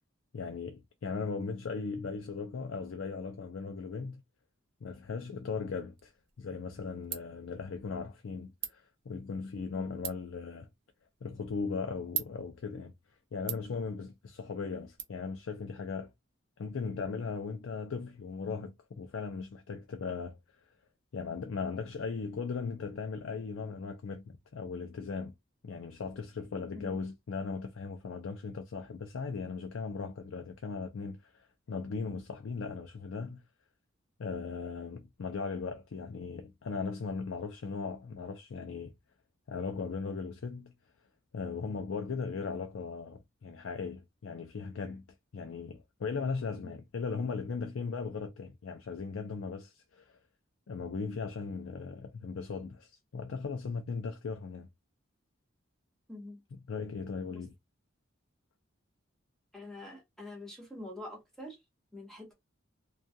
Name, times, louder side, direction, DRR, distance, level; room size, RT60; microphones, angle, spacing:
voice 1, 0.3-4.2 4.8-6.1 6.4-10.7 11.2-12.9 13.3-16.1 16.6-20.4 21.1-25.3 25.6-33.4 34.2-38.9 39.5-40.7 41.3-45.0 45.3-50.2 50.7-54.7 56.5-57.5, left 5 dB, 85° left, 0.5 m, -38 dB
Ratchet pawl, 5.9-15.0, right 10 dB, 55° right, 0.6 m, -45 dB
voice 2, 56.1-56.4 57.3-57.4 59.5-61.6 61.9-62.3, left 1 dB, ahead, 0.9 m, -45 dB
2.4 x 2.2 x 2.6 m
head